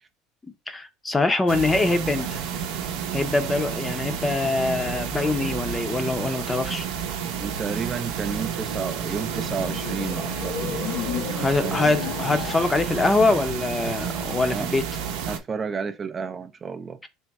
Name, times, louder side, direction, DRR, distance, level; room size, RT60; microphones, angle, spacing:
voice 1, 0.4-2.4 3.1-6.8 11.4-14.8, left 2 dB, 15° left, 0.6 m, -24 dB
sound 1, 1.5-15.4, right 7 dB, 75° right, 0.6 m, -31 dB
voice 2, 7.4-10.9 11.6-11.8 14.5-14.7 15.3-17.0, right 5 dB, 30° right, 0.3 m, -31 dB
sound 2, 9.0-14.1, left 7 dB, 75° left, 0.7 m, -34 dB
3.5 x 2.1 x 4.0 m
supercardioid pair, 100°, 0 cm